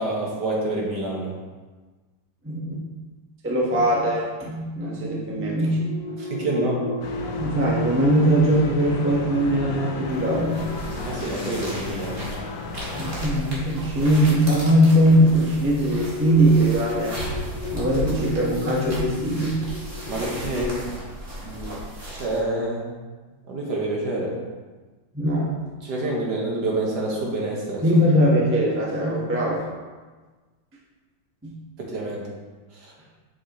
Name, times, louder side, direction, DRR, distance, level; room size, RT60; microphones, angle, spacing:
voice 1, 0.0-1.3 6.2-6.8 11.0-12.3 20.1-20.8 21.3-21.7 22.1-22.8 23.5-24.4 25.8-27.8 31.8-32.3 32.8-32.9, right 1 dB, 65° right, -2 dB, 1.8 m, -27 dB
voice 2, 2.4-2.8 3.4-5.9 7.4-10.6 12.9-17.2 17.7-19.6 20.0-20.1 25.1-25.5 27.8-29.6 31.4-31.6, equal, 10° right, -4 dB, 0.8 m, -21 dB
sound 1, 5.7-14.9 15.9-20.4, left 3 dB, 65° left, 1.2 m, -36 dB
sound 2, 7.0-13.2, left 3 dB, 85° left, 1.6 m, -34 dB
sound 3, 10.1-22.4, right 1 dB, 40° right, 2.0 m, -35 dB
8.1 x 6.0 x 3.0 m, 1.3 s
omnidirectional pair, 2.1 m